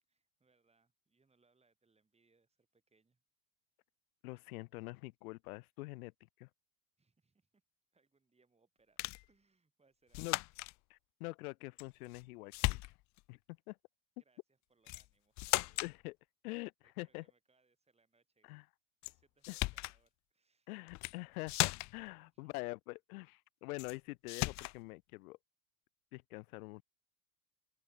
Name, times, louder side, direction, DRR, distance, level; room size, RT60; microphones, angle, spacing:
voice 1, 0.1-3.2 7.0-7.6 7.9-9.0 9.3-10.3 14.2-15.8 16.8-18.5 19.0-20.7 22.2-22.5, right 4 dB, 15° right, 6.8 m, -75 dB
voice 2, 4.2-6.1 6.4-6.5 10.2-10.4 10.9-12.8 13.3-13.4 13.7-13.8 15.8-16.2 16.4-17.2 18.4-18.6 19.5-19.6 20.7-25.4 26.1-26.8, left 23 dB, 75° left, 1.3 m, -45 dB
sound 1, 9.0-9.3 10.1-10.7 11.8-12.2 12.5-13.2 14.9-15.1 15.4-16.0 19.0-19.1 19.4-20.0 20.9-21.2 21.5-22.1 23.8-24.0 24.3-24.8, left 22 dB, 40° left, 0.5 m, -36 dB
open air
supercardioid pair, 110°, 44 cm